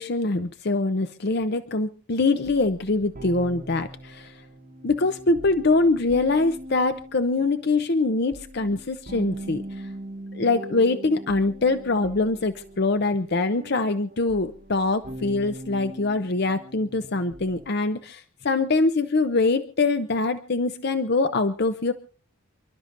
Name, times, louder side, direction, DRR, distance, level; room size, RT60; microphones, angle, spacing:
voice 1, 0.0-4.4 4.8-9.9 10.3-21.9, left 3 dB, 50° left, 10 dB, 0.7 m, -24 dB
sound 1, 2.4-17.7, right 1 dB, 40° right, 1.0 m, -41 dB
29.0 x 12.0 x 2.6 m, 0.36 s
head